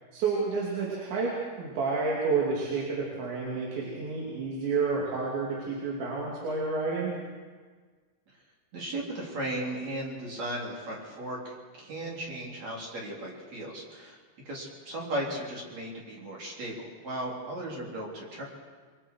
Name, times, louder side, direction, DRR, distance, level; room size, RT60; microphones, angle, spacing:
voice 1, 0.1-7.2, right 4 dB, 75° right, -5 dB, 5.1 m, -30 dB
voice 2, 8.7-14.2 14.4-18.4, right 1 dB, 40° right, -3 dB, 4.5 m, -36 dB
29.5 x 22.0 x 4.7 m, 1.5 s
omnidirectional pair, 5.2 m